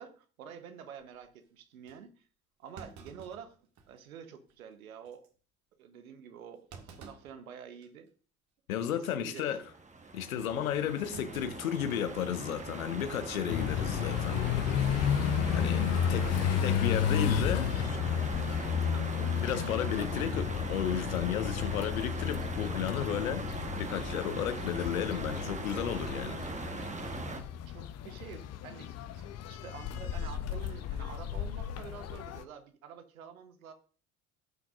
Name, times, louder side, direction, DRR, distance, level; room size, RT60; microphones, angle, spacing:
voice 1, 0.0-2.3 2.6-3.6 3.9-5.3 5.8-8.1 8.9-9.7 16.0-16.6 18.8-19.3 19.9-20.3 27.3-33.7, right 7 dB, 75° right, 1.1 m, -48 dB
Thump thud, 1.2-1.3 1.9-2.0 2.7-4.1 4.5-4.6 5.0-5.3 6.7-7.4 7.8-8.1 8.9-9.2 11.1-12.3 12.6-12.7 13.9-14.2, right 5 dB, 40° right, 1.7 m, -52 dB
voice 2, 8.7-9.6 10.1-14.4 15.5-16.2 16.6-17.7 19.4-23.5 23.8-26.8, left 10 dB, 75° left, 1.1 m, -33 dB
sound 1, 9.4-27.4, right 3 dB, 15° right, 1.2 m, -40 dB
sound 2, 13.5-32.4, left 8 dB, 35° left, 0.7 m, -32 dB
17.5 x 5.9 x 2.5 m
figure-of-eight pair, 60°, 43 cm